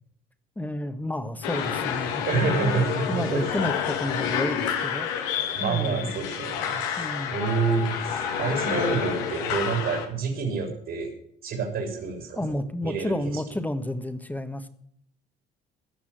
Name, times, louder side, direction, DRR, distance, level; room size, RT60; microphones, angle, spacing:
voice 1, 0.6-2.8 3.1-5.1 5.6-6.1 7.0-7.4 8.7-8.8 12.3-14.7, left 1 dB, 10° left, 10 dB, 1.5 m, -31 dB
sound 1, 1.4-10.1, left 8 dB, 80° left, 2.1 m, -29 dB
voice 2, 2.2-3.6 5.4-11.1 11.4-13.4, right 5 dB, 55° right, 3 dB, 3.7 m, -28 dB
15.0 x 6.1 x 9.1 m, 0.67 s
supercardioid pair, 80°, 21 cm